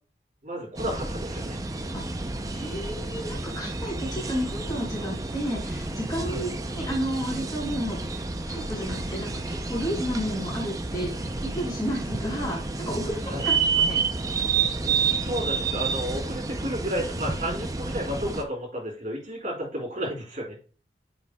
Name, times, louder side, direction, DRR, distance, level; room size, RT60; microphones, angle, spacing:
voice 1, 0.4-1.6 6.2-6.4 13.2-13.5 14.8-20.6, equal, 45° right, -2 dB, 3.9 m, -32 dB
sound 1, 0.8-18.4, right 4 dB, 20° right, 0.6 m, -30 dB
voice 2, 2.5-14.0, equal, 20° left, -4 dB, 4.2 m, -32 dB
9.2 x 6.9 x 2.3 m, 0.37 s
head